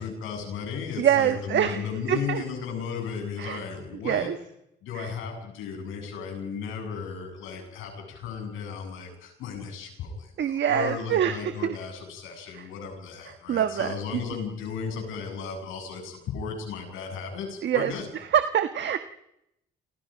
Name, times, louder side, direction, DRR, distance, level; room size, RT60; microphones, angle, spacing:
voice 1, 0.0-4.3 4.8-18.1, left 6 dB, 90° left, 3 dB, 7.9 m, -35 dB
voice 2, 1.0-2.4 3.4-3.6 4.0-4.4 4.9-5.1 10.4-11.8 12.5-12.6 13.3-14.2 17.6-19.0, right 9 dB, 65° right, 9 dB, 1.3 m, -25 dB
30.0 x 27.0 x 5.3 m, 0.82 s
cardioid pair, 90°, 20 cm